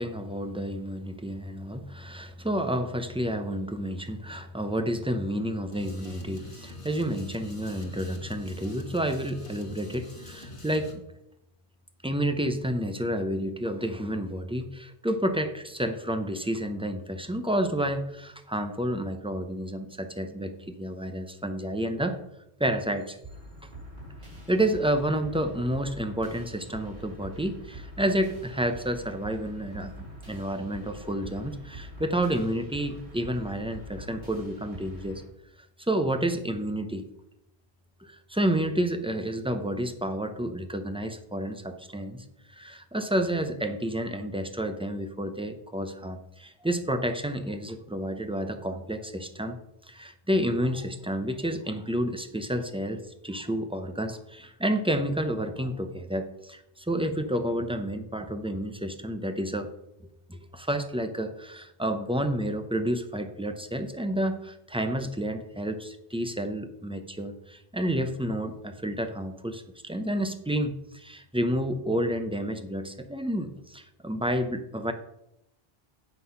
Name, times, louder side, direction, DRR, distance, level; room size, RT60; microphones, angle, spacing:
voice 1, 0.0-11.0 12.0-22.2 22.6-23.2 24.5-35.2 35.9-37.1 38.0-49.6 49.9-59.7 60.3-74.9, right 1 dB, 5° right, 8 dB, 0.5 m, -30 dB
sound 1, 5.7-11.0, left 1 dB, 30° left, 1.5 m, -45 dB
sound 2, 23.2-35.2, right 1 dB, 65° right, 3.6 m, -44 dB
8.2 x 5.6 x 5.7 m, 0.84 s
omnidirectional pair, 1.1 m